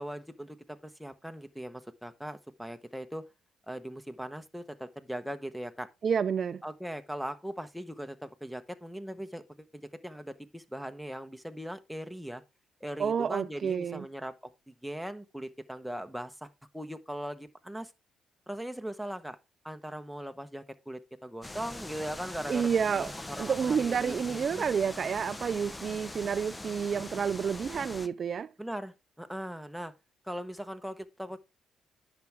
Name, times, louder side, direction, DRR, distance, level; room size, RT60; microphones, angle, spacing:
voice 1, 0.0-3.2 3.7-5.9 6.6-12.4 12.8-17.9 18.5-19.4 19.6-24.6 28.6-29.9 30.2-31.4, equal, ahead, 1.0 m, -40 dB
voice 2, 6.0-6.6 13.0-14.0 22.5-23.1 23.4-28.5, right 7 dB, 50° right, 0.4 m, -29 dB
sound 1, 21.4-28.1, left 2 dB, 15° left, 0.7 m, -42 dB
10.5 x 6.1 x 3.4 m
cardioid pair, 90°, 0 cm